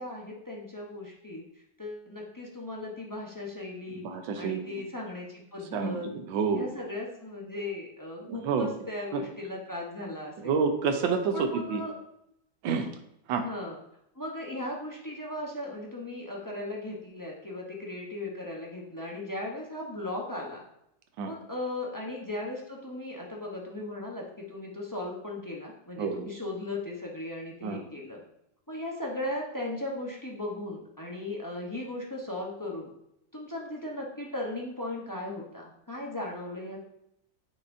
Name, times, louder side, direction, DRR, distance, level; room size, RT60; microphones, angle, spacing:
voice 1, 0.0-1.4 1.8-4.0 4.3-6.1 6.5-10.5 11.3-11.9 13.4-13.8 14.2-20.6 21.2-28.2 28.7-32.9 33.3-36.8, left 2 dB, 25° left, -2 dB, 0.4 m, -37 dB
voice 2, 4.0-4.8 5.7-6.7 8.2-8.7 9.1-9.2 10.4-11.8 12.6-12.9 13.3-13.4 21.2-21.3 26.0-26.3 27.6-27.8, right 5 dB, 80° right, 5 dB, 1.5 m, -29 dB
9.1 x 5.3 x 2.7 m, 0.80 s
omnidirectional pair, 2.1 m